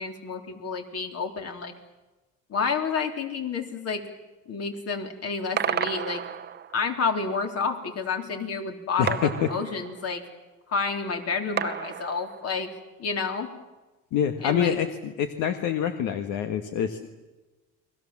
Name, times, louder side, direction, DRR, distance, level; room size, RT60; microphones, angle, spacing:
voice 1, 0.0-1.7 2.5-4.1 4.5-6.2 6.7-10.3 10.7-12.7 13.0-13.5 14.4-14.8, left 5 dB, 50° left, 5 dB, 3.7 m, -29 dB
sound 1, 5.6-6.9 9.1-10.3 11.6-12.7, right 8 dB, 35° right, 0.8 m, -32 dB
voice 2, 9.0-9.5 14.1-17.1, left 8 dB, 75° left, 7 dB, 1.7 m, -26 dB
30.0 x 22.0 x 7.4 m, 1.2 s
cardioid pair, 115°, 31 cm